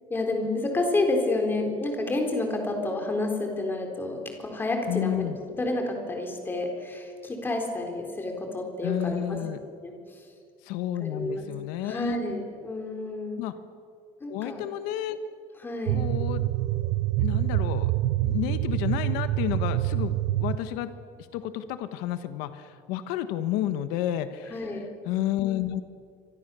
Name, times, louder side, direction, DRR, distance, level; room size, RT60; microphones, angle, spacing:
voice 1, 0.1-9.4 9.8-10.3 11.0-11.5 11.8-13.4 14.2-14.6 15.6-16.0 24.5-24.8, left 2 dB, 15° left, 3 dB, 3.8 m, -29 dB
voice 2, 4.9-5.4 8.8-9.6 10.6-12.2 13.4-13.5 14.3-15.2 15.9-16.4 17.2-17.9 18.2-20.1 20.4-20.9 21.3-24.7 25.0-25.8, left 12 dB, 75° left, 10 dB, 1.3 m, -30 dB
sound 1, 15.9-20.6, right 15 dB, 70° right, 0.9 m, -26 dB
29.0 x 25.0 x 7.0 m, 2.2 s
cardioid pair, 175°, 15 cm